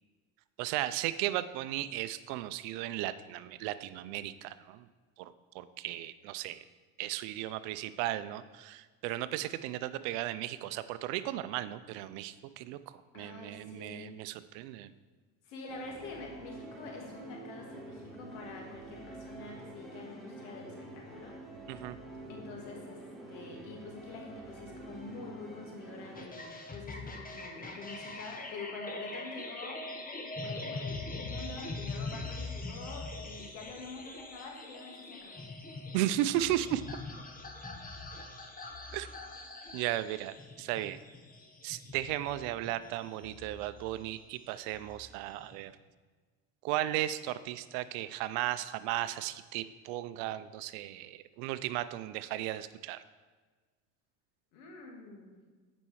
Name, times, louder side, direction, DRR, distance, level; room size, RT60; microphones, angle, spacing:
voice 1, 0.6-4.8 5.2-6.6 7.0-12.8 13.1-14.9 21.7-22.0 35.9-36.8 38.9-39.1 39.7-41.0 41.6-45.7 46.6-53.0, right 14 dB, 85° right, 14 dB, 0.5 m, -35 dB
voice 2, 13.1-14.1 15.4-21.4 22.3-29.8 30.4-35.5 54.5-55.4, left 3 dB, 90° left, 0 dB, 1.9 m, -46 dB
sound 1, 15.7-26.2, right 1 dB, ahead, 1.6 m, -47 dB
sound 2, 26.1-45.6, left 3 dB, 20° left, 1.2 m, -43 dB
8.7 x 5.3 x 4.7 m, 1.4 s
supercardioid pair, 85°, 38 cm